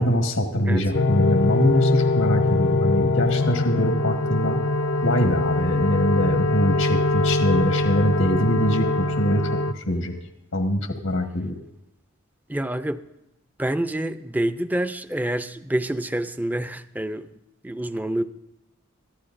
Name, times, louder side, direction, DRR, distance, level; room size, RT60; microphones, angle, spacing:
voice 1, 0.0-4.6 5.0-10.1 10.5-11.6, left 1 dB, 85° left, 3 dB, 1.6 m, -23 dB
sound 1, 0.9-9.7, left 2 dB, 65° left, 0.7 m, -22 dB
voice 2, 12.5-13.0 13.6-17.3 17.6-18.2, right 1 dB, 10° right, 11 dB, 0.5 m, -27 dB
22.0 x 14.0 x 2.6 m, 0.90 s
head